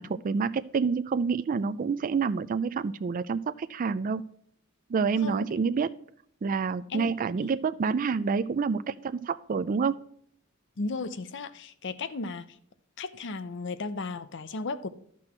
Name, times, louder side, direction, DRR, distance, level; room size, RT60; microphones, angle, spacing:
voice 1, 0.0-4.2 4.9-6.0 6.4-10.1, right 5 dB, 40° right, 13 dB, 0.3 m, -28 dB
voice 2, 10.8-12.5 13.0-14.9, left 3 dB, 60° left, 14 dB, 0.7 m, -35 dB
11.5 x 6.1 x 4.3 m, 0.65 s
head